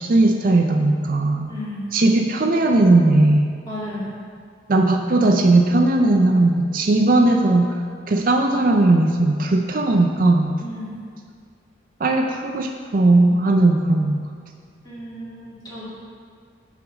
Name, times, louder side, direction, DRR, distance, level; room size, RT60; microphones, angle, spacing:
voice 1, 0.0-1.5 1.9-3.5 4.7-7.7 8.1-10.5 12.0-14.3, right 2 dB, 45° right, 3 dB, 0.5 m, -17 dB
voice 2, 1.5-1.8 3.7-4.1 10.6-10.9 14.8-15.9, left 1 dB, 20° left, -8 dB, 2.2 m, -33 dB
6.9 x 5.0 x 7.0 m, 2.1 s
head